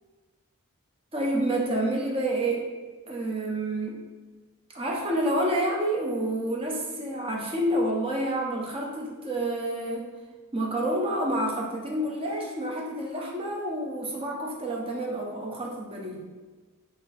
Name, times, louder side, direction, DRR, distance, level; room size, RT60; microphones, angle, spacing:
voice 1, 1.1-2.7 3.1-4.0 4.7-10.1 10.5-16.3, right 1 dB, 25° right, -1 dB, 0.5 m, -28 dB
3.0 x 2.6 x 3.9 m, 1.4 s
head